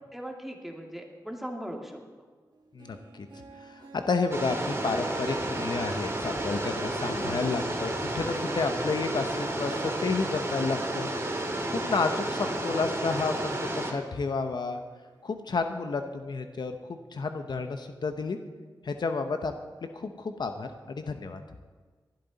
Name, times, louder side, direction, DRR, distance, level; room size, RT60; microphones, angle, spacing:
voice 1, 0.1-2.0 7.1-7.4, equal, 5° right, 1 dB, 2.3 m, -39 dB
Harp, 2.5-14.7 15.0-15.1 16.0-16.1, right 3 dB, 65° right, 2.0 m, -49 dB
voice 2, 2.7-3.3 3.6-11.1 11.7-14.8 15.2-18.4 18.8-19.5 19.9-21.4, left 4 dB, 70° left, 7 dB, 0.9 m, -31 dB
sound 1, 4.3-13.9, right 1 dB, 35° right, 2.6 m, -31 dB
18.5 x 12.0 x 4.1 m, 1.4 s
wide cardioid pair, 70°, 8 cm